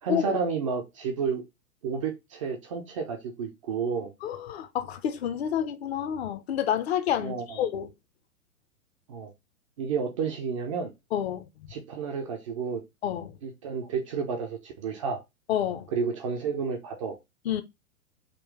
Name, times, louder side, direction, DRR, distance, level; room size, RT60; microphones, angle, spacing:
voice 1, 0.0-1.4 1.8-4.1 7.2-7.7 9.1-9.3 9.8-10.9 11.7-12.8 13.4-15.2 15.9-17.2, right 6 dB, 25° right, 0.4 m, -31 dB
voice 2, 4.2-7.9 11.1-11.7 13.0-13.4 15.5-15.9 17.4-17.6, left 9 dB, 45° left, 0.6 m, -29 dB
3.8 x 2.2 x 3.2 m
figure-of-eight pair, 110°, 42 cm